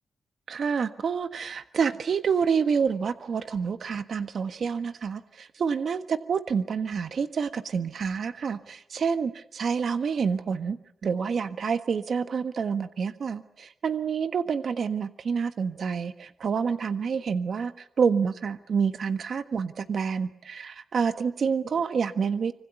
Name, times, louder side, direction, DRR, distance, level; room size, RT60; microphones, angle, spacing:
voice 1, 0.5-22.5, right 6 dB, 55° right, 10 dB, 1.5 m, -28 dB
25.5 x 25.5 x 8.4 m, 0.68 s
wide cardioid pair, 155°, 0 cm